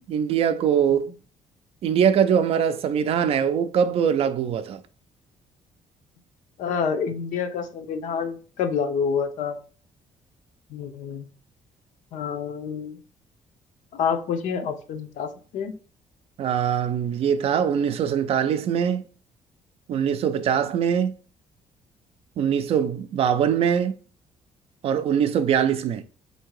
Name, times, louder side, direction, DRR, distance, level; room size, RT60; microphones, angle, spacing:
voice 1, 0.1-1.1 1.8-4.8 16.4-19.0 19.9-21.1 22.4-23.9 24.8-26.0, right 8 dB, 50° right, 0.4 m, -22 dB
voice 2, 6.6-9.6 10.7-11.3 12.1-13.0 13.9-15.8, left 6 dB, 75° left, 0.7 m, -28 dB
3.5 x 2.7 x 4.6 m
cardioid pair, 160°, 13 cm